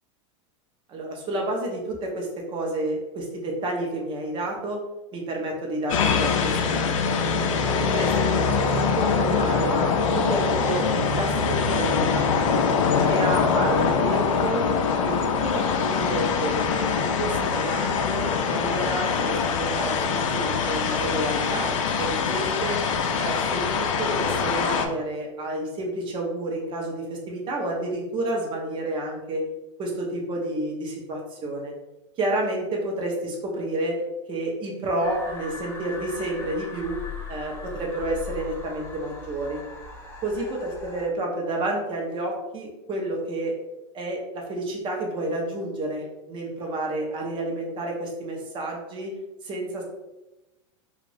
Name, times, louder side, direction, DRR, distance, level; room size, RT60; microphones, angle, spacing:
voice 1, 0.9-4.8 5.1-7.2 7.8-12.6 13.1-14.7 15.0-16.6 17.0-22.8 23.2-29.4 29.8-31.7 32.2-34.0 34.3-37.0 37.3-39.6 40.2-43.5 43.9-49.1 49.4-49.8, right 1 dB, 30° right, 0 dB, 0.8 m, -30 dB
sound 1, 5.9-24.9, left 5 dB, 85° left, 0.4 m, -23 dB
sound 2, 35.0-41.1, left 4 dB, 15° left, 0.7 m, -39 dB
2.5 x 2.5 x 3.3 m, 1.0 s
supercardioid pair, 130°, 16 cm